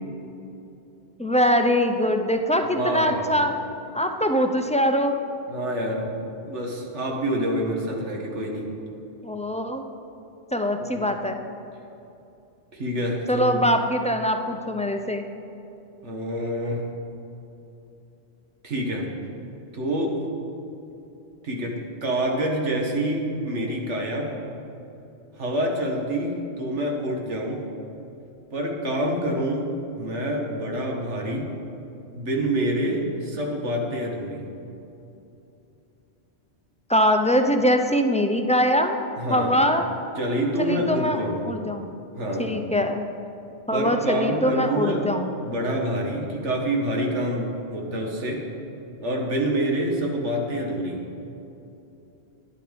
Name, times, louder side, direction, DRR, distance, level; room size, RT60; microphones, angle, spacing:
voice 1, 1.2-3.5 3.9-5.2 9.2-9.8 10.5-11.4 13.3-15.3 36.9-39.0 39.3-39.9 40.6-41.9 42.4-43.1 43.7-45.3, equal, 10° left, 5 dB, 0.3 m, -22 dB
voice 2, 2.8-3.3 5.5-6.2 6.4-8.7 10.9-11.1 12.7-13.7 16.0-16.9 18.6-19.1 19.7-20.2 21.4-24.4 25.4-27.7 28.5-31.5 32.1-34.4 39.2-39.6 40.2-41.5 42.2-42.6 43.7-45.1 45.4-48.5 49.0-51.1, right 1 dB, 90° right, 0 dB, 1.8 m, -27 dB
11.5 x 11.0 x 5.1 m, 2.9 s
omnidirectional pair, 1.2 m